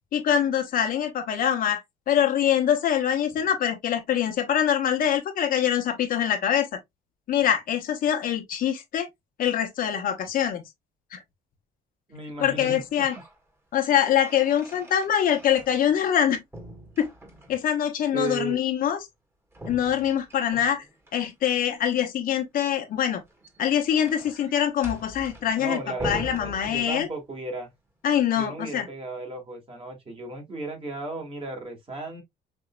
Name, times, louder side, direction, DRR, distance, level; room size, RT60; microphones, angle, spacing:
voice 1, 0.1-6.7 7.3-9.1 9.4-10.6 11.1-11.2 12.4-13.1 13.7-16.4 17.0-17.1 17.5-19.0 19.7-20.8 21.1-23.2 23.6-27.1 28.0-28.9, left 9 dB, 55° left, 1.0 m, -24 dB
voice 2, 12.1-12.8 18.1-18.6 25.6-27.7 28.3-32.2, right 2 dB, 35° right, 1.9 m, -35 dB
sound 1, 12.8-13.4 13.8-16.2 16.5-17.7 19.5-21.1 23.2-27.3, right 1 dB, 15° right, 1.5 m, -42 dB
5.2 x 2.8 x 2.2 m
cardioid pair, 110°, 17 cm